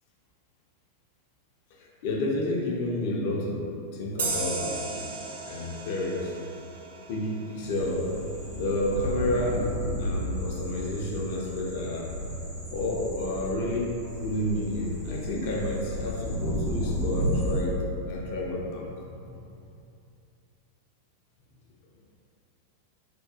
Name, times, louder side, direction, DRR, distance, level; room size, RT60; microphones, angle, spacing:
voice 1, 1.8-3.6 3.9-5.1 5.5-6.3 7.1-8.1 8.5-9.7 10.0-12.1 12.7-18.9, left 1 dB, 50° left, -2 dB, 0.5 m, -30 dB
sound 1, 4.2-7.5, right 3 dB, 65° right, 0.4 m, -35 dB
sound 2, 7.6-17.6, equal, 80° right, 1.4 m, -33 dB
3.3 x 2.2 x 2.8 m, 2.6 s
figure-of-eight pair, 90°, 0 cm